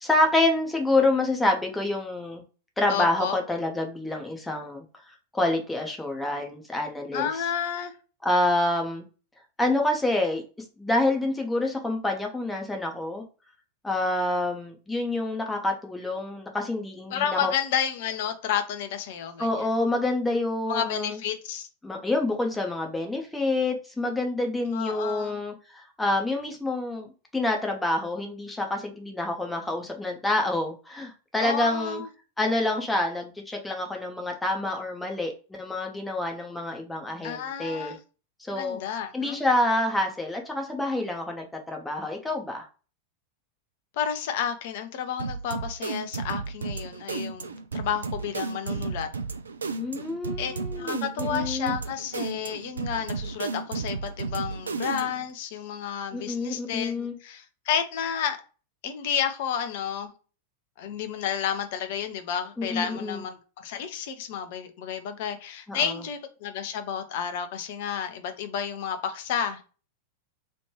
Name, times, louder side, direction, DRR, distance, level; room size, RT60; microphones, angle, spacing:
voice 1, 0.0-2.4 2.8-7.4 8.2-9.1 9.6-10.4 10.8-13.2 13.8-17.5 19.4-21.2 21.8-27.1 27.3-32.0 32.4-38.0 38.4-38.8 39.1-42.7 49.8-51.7 56.1-57.1 62.6-63.2 65.7-65.9, left 2 dB, 10° left, 0.7 m, -27 dB
voice 2, 2.9-3.4 7.1-7.9 17.1-19.7 20.6-21.7 24.7-25.4 31.4-32.1 37.2-38.0 38.5-39.4 44.0-49.1 50.4-58.4 58.8-60.1 60.8-69.6, left 8 dB, 50° left, 0.6 m, -31 dB
sound 1, 45.2-55.3, right 4 dB, 75° right, 0.4 m, -33 dB
3.1 x 2.5 x 3.0 m
figure-of-eight pair, 90°, 0 cm